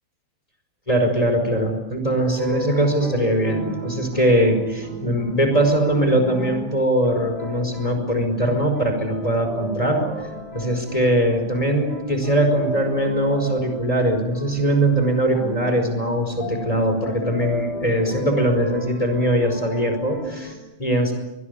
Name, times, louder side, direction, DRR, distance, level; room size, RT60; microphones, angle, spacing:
voice 1, 0.9-10.0 10.5-21.1, right 1 dB, 10° left, 5 dB, 5.0 m, -21 dB
sound 1, 2.2-20.5, equal, 30° left, 5.5 m, -34 dB
24.5 x 20.5 x 9.7 m, 0.98 s
omnidirectional pair, 3.4 m